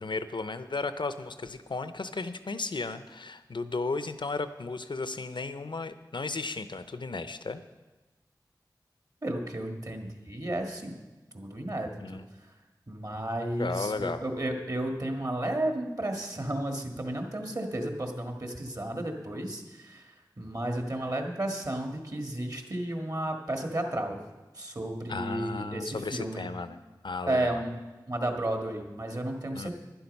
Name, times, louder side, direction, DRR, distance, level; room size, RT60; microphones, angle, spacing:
voice 1, 0.0-7.6 12.0-12.2 13.6-14.2 25.1-27.6 29.5-29.7, left 3 dB, 85° left, 12 dB, 0.6 m, -34 dB
voice 2, 9.2-11.0 11.3-12.2 12.9-24.2 24.6-26.5 27.3-27.7 28.1-29.7, right 1 dB, 50° right, 3 dB, 1.7 m, -33 dB
11.5 x 10.5 x 5.3 m, 1.2 s
wide cardioid pair, 55°, 8 cm